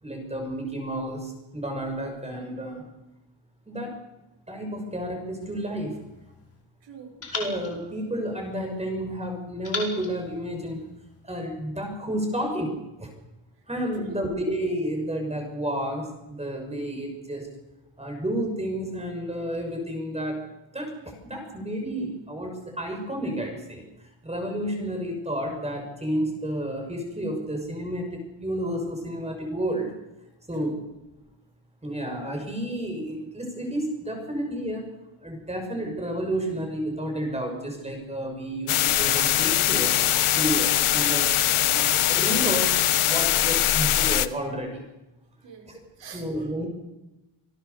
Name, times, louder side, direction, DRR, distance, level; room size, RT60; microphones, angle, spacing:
voice 1, 0.0-2.8 3.7-3.9 4.5-5.9 7.3-10.8 11.2-12.7 13.0-13.1 13.7-17.5 18.0-20.4 20.7-23.9 24.2-29.9 30.5-30.7 31.8-34.9 35.2-39.9 40.3-41.3 41.6-42.7 43.1-44.8 46.1-46.7, right 1 dB, 15° right, 3 dB, 6.1 m, -31 dB
sound 1, 5.4-6.6 7.2-8.8 9.6-11.2, left 3 dB, 30° left, 5.3 m, -39 dB
voice 2, 6.8-7.1 13.9-14.2 30.5-30.8 40.3-40.7 45.4-46.6, right 6 dB, 60° right, 2 dB, 6.3 m, -45 dB
sound 2, 38.7-44.3, left 12 dB, 80° left, 1.2 m, -22 dB
27.0 x 18.0 x 6.9 m, 0.95 s
wide cardioid pair, 165°, 50 cm